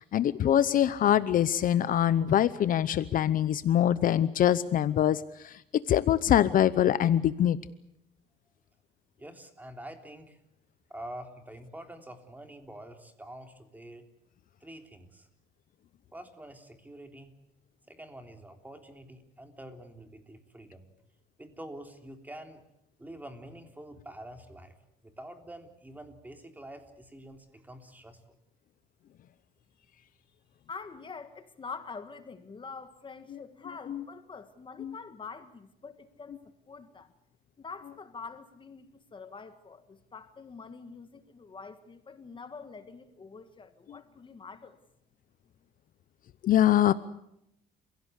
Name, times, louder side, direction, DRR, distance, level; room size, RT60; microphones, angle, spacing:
voice 1, 0.0-5.6 5.9-7.6 33.3-33.4 33.9-34.0 34.8-34.9 46.4-46.9, left 11 dB, 55° left, 15 dB, 0.8 m, -24 dB
voice 2, 9.2-10.4 10.9-14.1 14.6-15.3 16.1-17.3 17.9-20.9 21.4-22.6 23.0-24.8 25.0-28.2, right 1 dB, 10° right, 5 dB, 3.5 m, -46 dB
voice 3, 30.7-36.4 36.7-37.1 37.6-44.8, left 5 dB, 30° left, 10 dB, 1.7 m, -45 dB
30.0 x 16.5 x 8.3 m, 0.81 s
cardioid pair, 110°, 17 cm